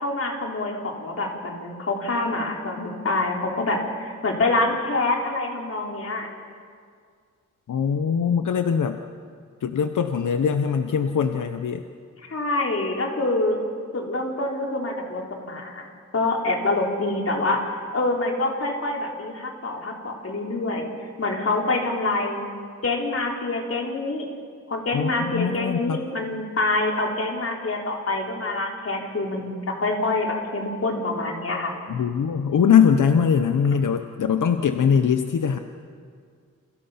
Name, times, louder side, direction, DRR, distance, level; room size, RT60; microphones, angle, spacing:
voice 1, 0.0-6.3 12.3-13.6 13.9-15.9 16.1-17.6 17.9-20.9 21.2-22.4 22.8-24.3 24.7-31.7, left 2 dB, 50° left, 0 dB, 4.1 m, -26 dB
voice 2, 7.7-9.0 9.6-11.8 24.9-26.0 31.9-35.6, left 7 dB, 85° left, 7 dB, 1.1 m, -21 dB
29.5 x 28.0 x 5.9 m, 2.1 s
wide cardioid pair, 145°, 30 cm